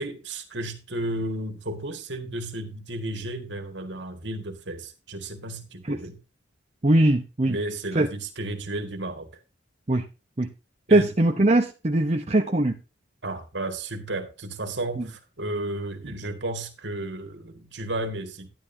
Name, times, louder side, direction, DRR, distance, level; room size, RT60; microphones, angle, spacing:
voice 1, 0.0-6.2 7.4-9.3 10.9-11.1 13.2-18.5, right 1 dB, 65° right, 2.1 m, -33 dB
voice 2, 6.8-7.6 7.9-8.1 9.9-10.0 10.4-10.5 10.9-12.8, right 1 dB, 35° right, 0.8 m, -21 dB
12.0 x 11.0 x 2.8 m
head